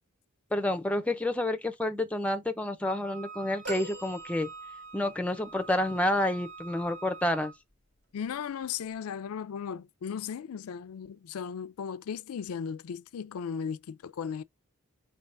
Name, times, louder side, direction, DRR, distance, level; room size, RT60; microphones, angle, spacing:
voice 1, 0.5-4.5 4.9-7.5, left 1 dB, 5° left, 0.4 m, -29 dB
Wind instrument woodwind instrument, 2.9-7.6, right 4 dB, 75° right, 1.9 m, -47 dB
sound 1, 3.6-5.1 5.8-5.9, right 2 dB, 50° right, 1.6 m, -42 dB
voice 2, 8.1-14.4, left 7 dB, 85° left, 0.4 m, -36 dB
4.6 x 3.4 x 2.5 m
head